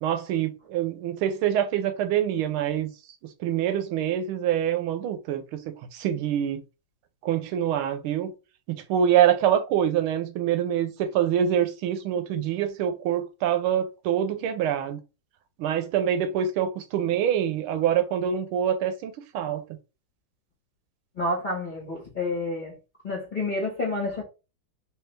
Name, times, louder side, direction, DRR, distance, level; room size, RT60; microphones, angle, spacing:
voice 1, 0.0-2.9 3.4-5.6 5.9-6.6 7.2-8.3 8.7-15.0 15.6-19.6, right 9 dB, 85° right, 1.5 m, -25 dB
voice 2, 21.2-22.7 23.0-24.2, left 2 dB, 30° left, 0.9 m, -29 dB
3.3 x 3.3 x 3.2 m
omnidirectional pair, 2.3 m